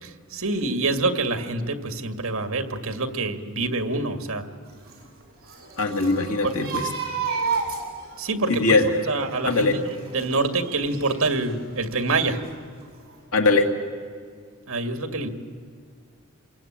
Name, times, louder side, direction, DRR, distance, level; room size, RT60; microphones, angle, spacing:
voice 1, 0.0-4.5 6.4-6.5 8.2-8.8 9.1-9.8 10.1-12.4 14.7-15.3, right 3 dB, 65° right, 7 dB, 2.1 m, -26 dB
sound 1, 4.7-11.6 12.0-12.8 13.1-13.2, right 5 dB, 45° right, 7.1 m, -33 dB
voice 2, 5.8-6.9 8.5-8.9 9.4-9.8 13.3-13.7, left 3 dB, 75° left, 3 dB, 2.2 m, -21 dB
28.0 x 22.5 x 8.9 m, 2.1 s
head